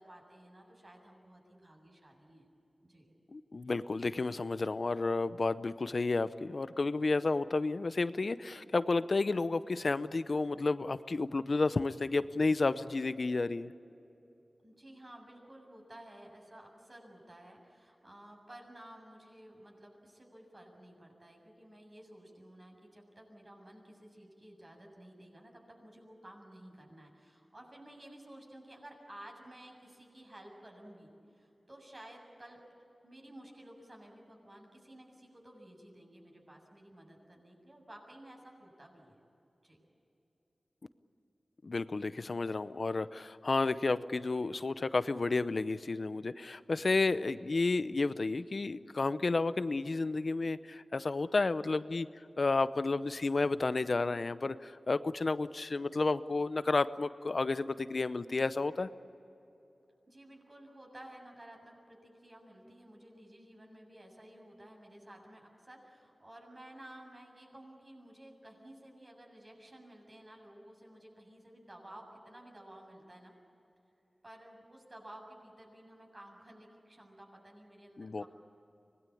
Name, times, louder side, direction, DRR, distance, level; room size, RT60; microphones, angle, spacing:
voice 1, 0.0-2.5 2.8-3.1 14.6-32.6 33.0-39.2 39.6-39.8 60.1-73.3 74.2-78.3, right 1 dB, 40° right, 1 dB, 7.3 m, -54 dB
voice 2, 3.3-13.7 41.6-52.1 52.4-58.9 78.0-78.2, left 3 dB, 60° left, 14 dB, 0.8 m, -31 dB
25.0 x 20.0 x 8.7 m, 2.9 s
cardioid pair, 50°, 0 cm